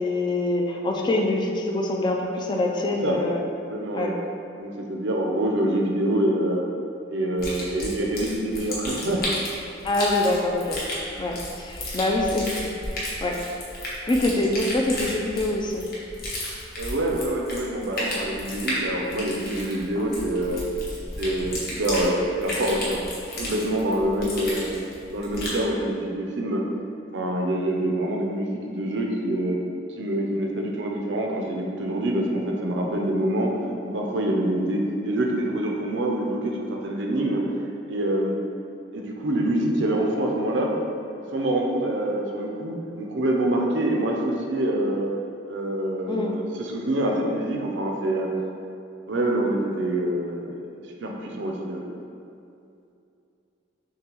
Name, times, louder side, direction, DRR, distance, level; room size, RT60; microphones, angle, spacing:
voice 1, 0.0-3.4 3.9-4.1 9.8-10.8 11.2-12.5 13.0-13.4 14.1-15.9 46.1-46.4, left 2 dB, 25° left, 0 dB, 0.3 m, -25 dB
voice 2, 3.7-4.1 4.6-6.6 7.1-9.2 16.8-20.7 21.2-23.0 23.4-24.7 25.1-26.6 27.1-29.6 30.0-37.6 37.9-38.4 38.9-40.7 41.3-45.1 45.5-48.3 49.1-50.6 51.0-51.9, right 1 dB, 65° right, 0 dB, 0.5 m, -26 dB
sound 1, 7.4-25.6, left 1 dB, 50° left, 1.0 m, -33 dB
6.6 x 2.2 x 3.0 m, 2.6 s
head